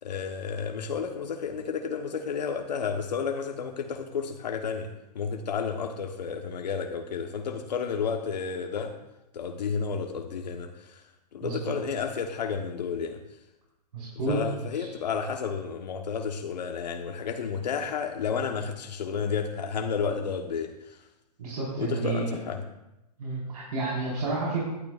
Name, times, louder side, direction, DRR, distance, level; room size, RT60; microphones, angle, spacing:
voice 1, 0.0-9.0 9.3-11.0 11.3-13.2 14.3-21.0 21.8-22.6, left 6 dB, 80° left, 4 dB, 1.1 m, -31 dB
voice 2, 11.4-11.7 13.9-14.3 14.7-14.9 21.4-22.4 23.2-24.6, right 3 dB, 65° right, -6 dB, 4.4 m, -31 dB
16.0 x 12.0 x 2.4 m, 0.95 s
hypercardioid pair, 145°, 21 cm